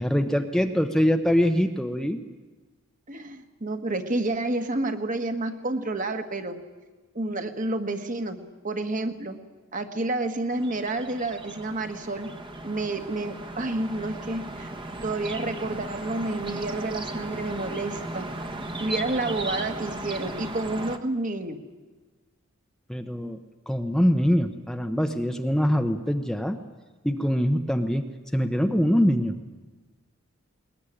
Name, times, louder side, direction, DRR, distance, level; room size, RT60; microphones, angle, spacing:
voice 1, 0.0-2.2 22.9-23.4 23.7-26.6 27.0-28.0 28.3-29.4, equal, 5° left, 6 dB, 0.8 m, -23 dB
voice 2, 3.1-6.6 7.1-8.4 8.6-9.4 9.7-12.3 12.6-14.7 15.0-18.3 18.8-21.6, right 2 dB, 40° right, 6 dB, 1.6 m, -29 dB
sound 1, 10.5-21.0, right 2 dB, 25° right, 1.3 m, -36 dB
20.5 x 20.0 x 10.0 m, 1.3 s
head